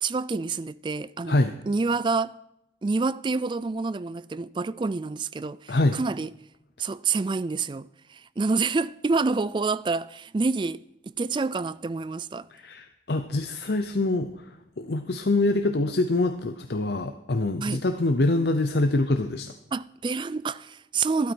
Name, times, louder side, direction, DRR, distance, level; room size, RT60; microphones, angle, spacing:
voice 1, 0.0-1.4 1.7-2.3 2.8-6.3 6.8-12.5 17.6-17.8 19.7-21.3, right 4 dB, 25° right, 0.3 m, -28 dB
voice 2, 5.7-6.0 12.5-19.5, left 2 dB, 65° left, 0.7 m, -25 dB
12.5 x 12.5 x 4.6 m
head